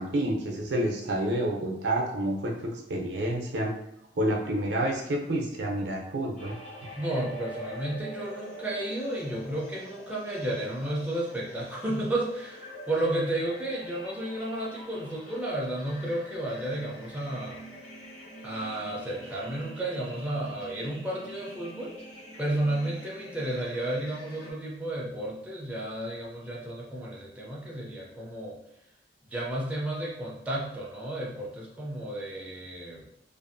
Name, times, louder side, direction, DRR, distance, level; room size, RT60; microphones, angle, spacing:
voice 1, 0.0-3.7 4.2-6.5, right 1 dB, 75° right, 0 dB, 0.6 m, -29 dB
sound 1, 6.4-24.5, equal, 80° left, 1.5 m, -45 dB
voice 2, 7.0-17.6 18.4-21.9 22.4-28.6 29.3-33.1, right 1 dB, 10° right, -4 dB, 0.5 m, -32 dB
2.6 x 2.4 x 2.5 m, 0.81 s
head